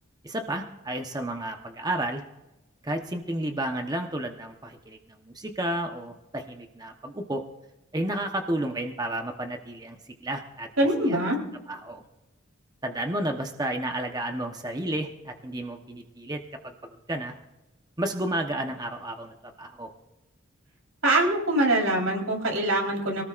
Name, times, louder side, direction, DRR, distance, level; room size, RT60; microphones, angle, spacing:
voice 1, 0.2-2.2 2.8-7.4 7.9-10.0 10.2-10.7 11.0-11.2 11.7-12.0 12.8-16.7 17.1-17.3 18.0-19.9, right 1 dB, 20° right, 4 dB, 1.0 m, -31 dB
voice 2, 10.8-11.4 21.0-23.2, right 1 dB, 90° right, 0 dB, 4.1 m, -23 dB
24.0 x 18.0 x 2.5 m, 0.97 s
head